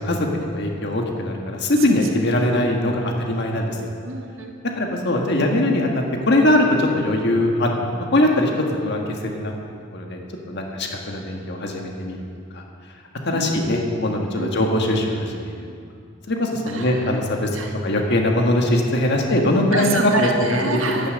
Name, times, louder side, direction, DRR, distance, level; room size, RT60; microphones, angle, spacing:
voice 1, 0.0-3.9 4.8-8.5 8.8-9.0 9.3-9.5 9.9-10.2 10.5-12.2 12.5-12.6 13.2-15.7 16.3-17.5 17.8-20.3 20.9-21.1, left 1 dB, 60° left, 1 dB, 1.7 m, -21 dB
voice 2, 4.0-4.5 13.2-14.1 14.4-14.5 16.7-17.2 17.5-17.7 19.7-21.1, right 2 dB, 85° right, 2 dB, 1.8 m, -27 dB
11.5 x 11.5 x 7.9 m, 2.3 s
head